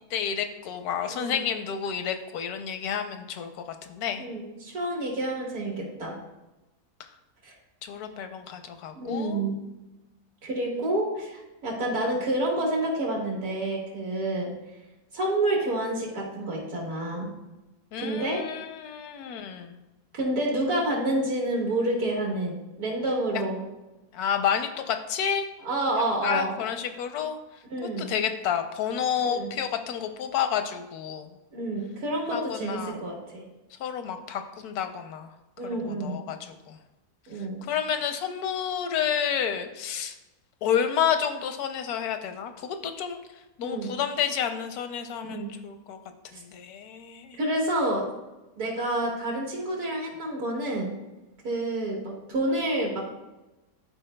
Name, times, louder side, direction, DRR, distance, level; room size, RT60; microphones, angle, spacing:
voice 1, 0.1-4.3 7.0-7.1 7.8-9.5 17.9-19.8 24.1-25.5 26.0-27.4 27.8-31.4 32.3-33.0 33.8-35.3 35.6-36.8 37.3-40.1 40.6-43.2 43.6-46.0 46.3-47.4, left 8 dB, 85° left, 7 dB, 1.1 m, -30 dB
voice 2, 1.1-1.5 4.2-6.2 7.4-7.5 9.0-9.6 10.4-14.5 15.1-17.3 18.0-18.4 20.1-23.6 25.6-26.5 27.7-28.1 29.2-29.5 31.5-33.4 35.6-36.2 37.3-37.6 43.6-43.9 45.2-45.6 46.3-46.4 47.4-48.1 48.6-50.9 51.4-53.1, right 1 dB, 75° right, -2 dB, 2.1 m, -29 dB
12.0 x 4.6 x 2.2 m, 1.0 s
omnidirectional pair, 1.6 m